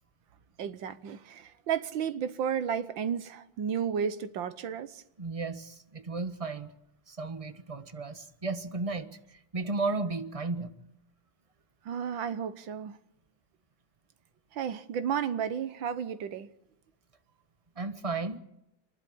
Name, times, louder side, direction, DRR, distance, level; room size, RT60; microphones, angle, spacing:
voice 1, 0.6-5.0 11.9-13.0 14.5-16.5, right 8 dB, 75° right, 1.7 m, -33 dB
voice 2, 5.2-6.7 7.1-10.7 17.8-18.4, right 3 dB, 20° right, 1.0 m, -34 dB
27.0 x 12.0 x 8.6 m
omnidirectional pair, 2.2 m